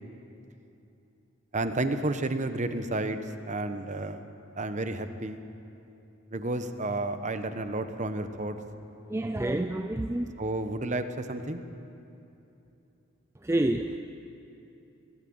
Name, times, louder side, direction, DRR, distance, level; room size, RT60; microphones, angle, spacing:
voice 1, 1.5-3.2 3.4-4.3 4.6-5.4 6.3-8.6 10.4-11.6, right 2 dB, 35° right, 9 dB, 1.0 m, -31 dB
voice 2, 9.1-10.3 13.4-14.0, right 1 dB, 15° right, 6 dB, 0.5 m, -28 dB
22.0 x 13.5 x 8.8 m, 2.9 s
head